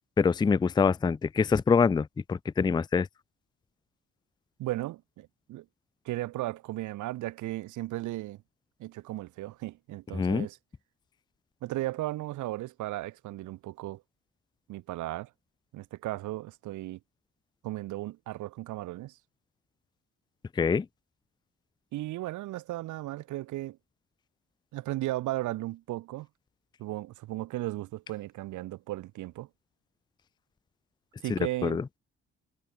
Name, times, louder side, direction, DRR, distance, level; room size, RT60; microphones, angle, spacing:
voice 1, 0.2-3.1 10.1-10.5 20.6-20.9 31.3-31.8, left 5 dB, 15° left, 0.4 m, -25 dB
voice 2, 4.6-5.7 6.0-8.4 8.8-10.6 11.6-14.0 14.7-15.3 15.7-17.0 17.6-19.2 21.9-23.8 24.7-26.3 26.8-29.5 31.2-31.8, right 16 dB, 75° right, 0.7 m, -35 dB
cardioid pair, 90°, 30 cm